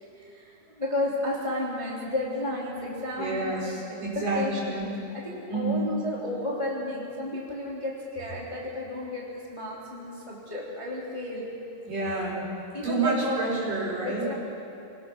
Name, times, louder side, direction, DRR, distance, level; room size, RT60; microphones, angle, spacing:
voice 1, 0.2-3.6 4.1-11.5 12.7-13.4 14.0-14.3, left 1 dB, 10° left, -5 dB, 2.5 m, -32 dB
voice 2, 3.2-4.9 5.5-5.8 11.9-12.4 12.8-14.3, right 3 dB, 60° right, -5 dB, 6.8 m, -29 dB
25.0 x 20.0 x 6.1 m, 2.8 s
omnidirectional pair, 4.4 m